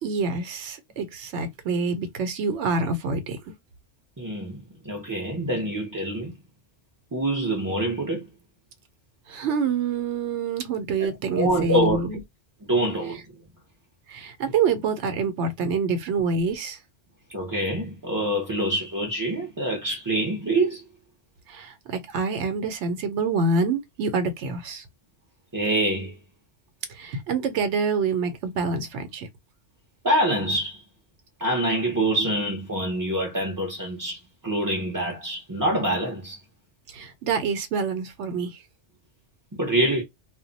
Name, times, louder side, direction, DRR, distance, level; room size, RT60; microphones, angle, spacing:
voice 1, 0.0-3.5 9.3-12.2 14.1-16.8 21.5-24.8 26.9-29.3 36.9-38.6, right 4 dB, 75° right, 0.9 m, -26 dB
voice 2, 4.2-6.3 7.1-8.3 11.0-12.0 12.7-13.2 17.3-20.8 25.5-26.1 30.0-30.8 31.4-36.4 39.6-40.0, right 1 dB, 25° right, 0.5 m, -25 dB
2.2 x 2.1 x 3.8 m
omnidirectional pair, 1.2 m